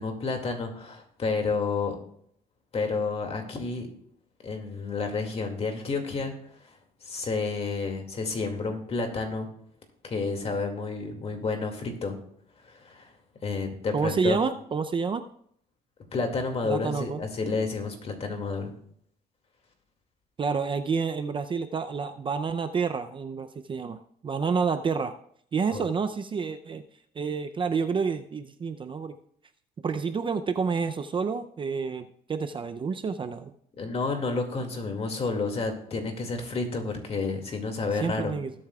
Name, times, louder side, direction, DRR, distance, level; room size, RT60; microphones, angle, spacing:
voice 1, 0.0-2.0 2.7-3.9 4.4-6.3 7.0-9.5 10.1-12.2 12.6-13.1 13.4-14.4 16.1-18.7 25.7-25.9 33.8-38.3, left 4 dB, 35° left, 4 dB, 2.3 m, -30 dB
voice 2, 13.9-15.2 16.6-17.2 20.4-25.2 25.5-26.8 27.2-29.2 29.8-33.5 38.0-38.5, right 5 dB, 30° right, 9 dB, 0.5 m, -29 dB
19.5 x 8.4 x 2.4 m, 0.65 s
cardioid pair, 110°, 17 cm